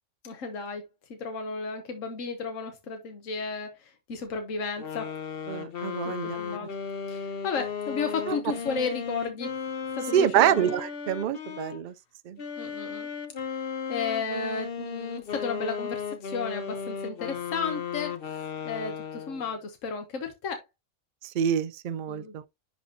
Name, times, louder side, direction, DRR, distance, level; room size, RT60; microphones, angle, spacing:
voice 1, 0.2-5.1 6.0-6.7 7.1-9.5 9.9-10.7 12.6-13.1 13.4-13.6 13.9-20.6 22.1-22.3, left 4 dB, 75° left, 1.4 m, -34 dB
sound 1, 4.8-11.8 12.4-19.5, left 6 dB, 50° left, 0.9 m, -35 dB
voice 2, 5.5-6.4 8.3-8.4 10.1-11.9 12.3-12.4 21.2-22.5, right 9 dB, 80° right, 0.4 m, -26 dB
10.0 x 4.2 x 2.7 m
omnidirectional pair, 1.4 m